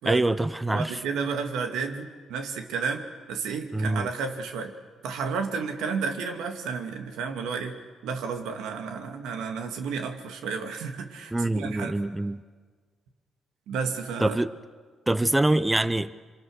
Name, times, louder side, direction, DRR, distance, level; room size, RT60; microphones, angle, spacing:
voice 1, 0.0-1.0 3.7-4.1 11.3-12.4 14.2-14.5 15.1-16.1, right 1 dB, 10° right, 15 dB, 0.8 m, -24 dB
voice 2, 0.7-4.7 5.0-7.8 8.0-12.0 13.7-14.4, right 5 dB, 90° right, 5 dB, 2.3 m, -32 dB
27.0 x 24.5 x 6.5 m, 1.5 s
cardioid pair, 90°, 0 cm